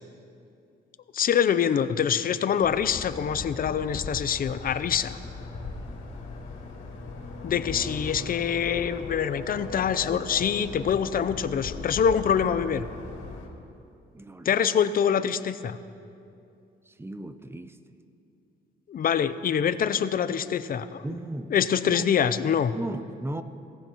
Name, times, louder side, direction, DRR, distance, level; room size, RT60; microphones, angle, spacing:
voice 1, 1.1-5.2 7.4-12.8 14.4-15.8 18.9-21.0 21.5-22.7, left 8 dB, 45° left, 13 dB, 0.6 m, -25 dB
sound 1, 2.6-13.5, left 3 dB, 75° left, 2.4 m, -39 dB
voice 2, 14.1-14.6 16.9-17.8 21.0-22.1 22.7-23.4, right 1 dB, 10° right, 11 dB, 0.6 m, -36 dB
17.5 x 15.0 x 3.0 m, 2.6 s
cardioid pair, 90°, 20 cm